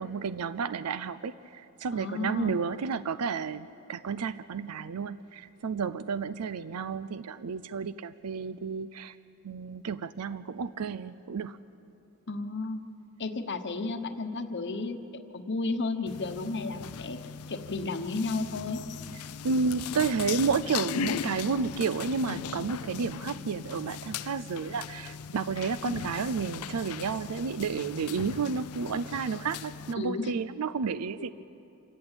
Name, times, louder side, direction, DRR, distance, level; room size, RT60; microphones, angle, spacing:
voice 1, 0.0-9.2 9.4-11.6 19.4-31.3, right 5 dB, 90° right, 15 dB, 0.5 m, -31 dB
voice 2, 1.9-2.6 12.3-12.8 13.2-15.0 15.3-17.2 17.5-18.8 30.0-30.3, left 3 dB, 55° left, 7 dB, 1.1 m, -32 dB
sound 1, 16.1-29.9, left 7 dB, 80° left, 0.5 m, -38 dB
26.5 x 14.5 x 9.0 m, 2.9 s
head